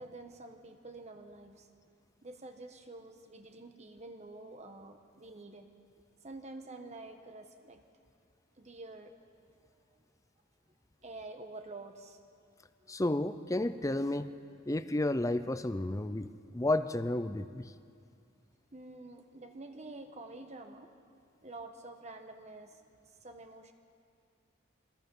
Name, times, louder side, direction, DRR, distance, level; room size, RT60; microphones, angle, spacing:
voice 1, 0.0-1.7 2.2-5.7 6.2-7.8 8.6-9.1 9.7-10.0 11.0-12.2 12.8-13.0 18.7-21.1 21.4-23.7, right 2 dB, 35° right, 6 dB, 1.2 m, -48 dB
voice 2, 12.9-14.3 14.7-17.7, left 1 dB, 15° left, 12 dB, 0.6 m, -32 dB
25.5 x 21.0 x 5.5 m, 2.3 s
head